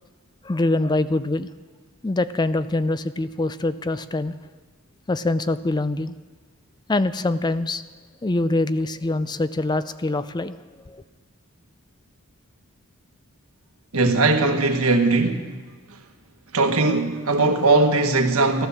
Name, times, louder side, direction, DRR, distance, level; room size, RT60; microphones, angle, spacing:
voice 1, 0.4-1.5 2.0-4.3 5.1-6.1 6.9-7.8 8.2-10.6 10.9-11.0, left 2 dB, 20° left, 0.4 m, -24 dB
voice 2, 13.9-15.4 16.5-18.7, right 3 dB, 90° right, 1.5 m, -19 dB
14.5 x 12.0 x 7.2 m
head